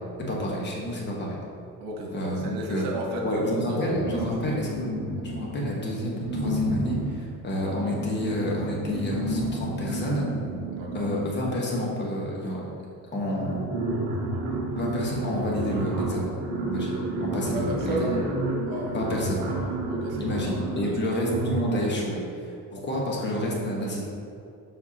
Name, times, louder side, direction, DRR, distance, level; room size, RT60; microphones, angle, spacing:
voice 1, 0.3-1.4 2.1-2.9 3.2-4.9 5.2-10.3 10.9-12.7 13.1-13.7 14.7-16.3 16.6-18.1 18.9-19.4 20.2-22.2 22.7-24.0, equal, 30° left, -3 dB, 1.2 m, -29 dB
voice 2, 1.8-3.8 4.1-4.2 10.7-11.1 17.5-18.3 18.7-19.0 19.5-19.6 19.9-20.4 20.8-20.9, right 1 dB, 85° right, -1 dB, 1.4 m, -33 dB
sound 1, 3.9-5.7 6.2-11.8 12.8-12.9 13.1-22.0, right 1 dB, 65° right, 1.4 m, -31 dB
7.4 x 5.7 x 2.9 m, 2.5 s
cardioid pair, 155°, 36 cm